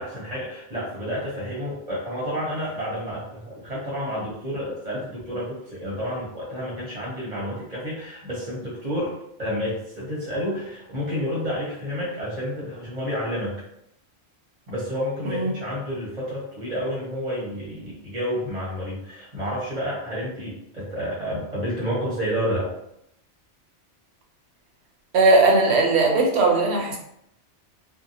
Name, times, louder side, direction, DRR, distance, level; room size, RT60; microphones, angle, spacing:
voice 1, 0.0-13.6 14.7-22.7, equal, 35° right, -6 dB, 0.8 m, -30 dB
voice 2, 25.1-27.0, right 3 dB, 70° right, 1 dB, 0.9 m, -18 dB
2.6 x 2.0 x 2.7 m, 0.77 s
omnidirectional pair, 1.2 m